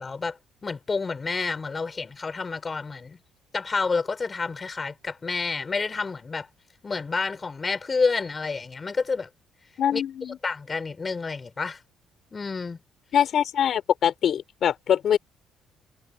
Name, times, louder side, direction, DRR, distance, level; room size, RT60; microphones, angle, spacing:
voice 1, 0.0-3.2 3.5-6.5 6.8-9.3 9.9-10.0 10.4-11.8 12.3-12.8, left 4 dB, 25° left, 5.3 m, -29 dB
voice 2, 9.8-10.4 13.1-15.2, left 9 dB, 55° left, 4.8 m, -23 dB
cardioid pair, 115°, 0 cm